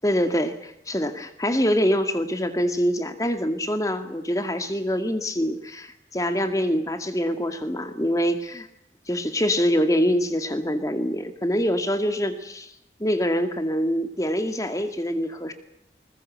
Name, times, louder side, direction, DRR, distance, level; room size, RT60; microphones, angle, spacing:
voice 1, 0.0-8.7 9.1-12.7 13.0-15.5, equal, 20° left, 8 dB, 2.1 m, -25 dB
21.0 x 21.0 x 8.1 m, 0.81 s
head